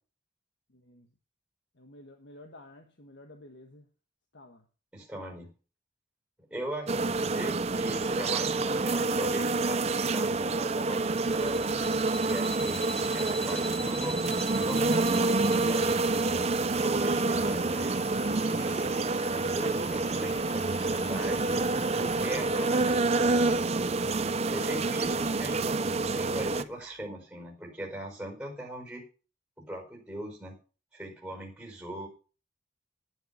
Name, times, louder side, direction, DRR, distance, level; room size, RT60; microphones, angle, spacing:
voice 1, 0.7-1.1 1.7-3.9 4.3-4.7 24.6-24.9, left 1 dB, 65° left, 1.4 m, -51 dB
voice 2, 4.9-5.5 6.5-11.7 12.2-12.9 13.1-16.0 16.7-18.0 18.3-19.0 19.5-21.6 22.0-23.4 24.5-29.0 29.7-30.6 30.9-32.1, right 1 dB, 5° right, 4.9 m, -40 dB
sound 1, 6.9-26.6, right 3 dB, 30° right, 0.5 m, -28 dB
sound 2, 11.0-17.0, left 1 dB, 25° left, 7.0 m, -43 dB
sound 3, 15.0-27.1, left 11 dB, 45° left, 1.4 m, -48 dB
10.5 x 10.0 x 5.6 m
head